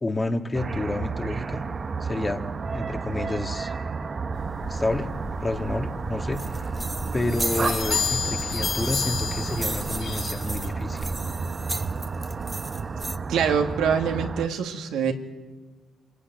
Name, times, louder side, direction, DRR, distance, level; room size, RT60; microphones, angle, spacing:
voice 1, 0.0-1.6 2.0-3.7 4.7-5.1 5.4-6.7 7.1-11.1, left 2 dB, 20° left, 5 dB, 1.8 m, -30 dB
sound 1, 0.5-14.5, right 4 dB, 40° right, 0.9 m, -31 dB
sound 2, 4.3-10.7, left 6 dB, 60° left, 3.1 m, -32 dB
sound 3, 6.3-13.2, right 2 dB, 15° right, 1.1 m, -36 dB
voice 2, 13.3-15.1, right 7 dB, 85° right, 4 dB, 2.0 m, -24 dB
26.0 x 15.0 x 9.2 m, 1.4 s
cardioid pair, 90°, 0 cm